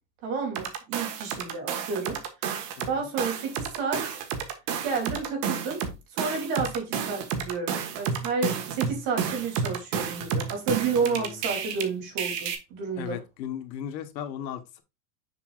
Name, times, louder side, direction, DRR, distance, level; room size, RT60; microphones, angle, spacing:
voice 1, 0.2-2.2 2.8-4.2 4.8-5.9 6.1-13.2, right 4 dB, 45° right, 3.0 m, -31 dB
sound 1, 0.6-2.9 3.2-11.8 12.2-12.6, right 7 dB, 75° right, 1.6 m, -31 dB
voice 2, 11.0-11.4 12.9-14.8, left 9 dB, 85° left, 1.4 m, -36 dB
7.0 x 6.1 x 2.4 m
supercardioid pair, 155°, 50 cm